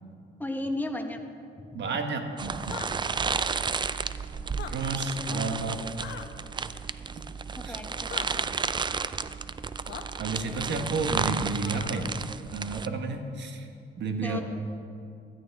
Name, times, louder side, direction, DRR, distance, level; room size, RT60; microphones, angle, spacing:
voice 1, 0.4-1.2 1.6-1.8 5.2-5.6 7.5-8.1 14.2-14.4, left 1 dB, 10° left, 4 dB, 1.2 m, -34 dB
voice 2, 1.7-2.8 4.7-5.8 7.6-7.8 10.2-12.2 12.5-13.7 14.0-14.4, right 3 dB, 60° right, 5 dB, 1.4 m, -31 dB
sound 1, 2.4-12.9, right 5 dB, 25° right, 0.4 m, -32 dB
sound 2, 2.6-2.9 4.5-4.7 6.0-6.3 8.1-8.3 9.9-10.0 11.6-12.1, left 9 dB, 65° left, 0.9 m, -40 dB
16.0 x 12.5 x 3.6 m, 2.4 s
cardioid pair, 90°, 20 cm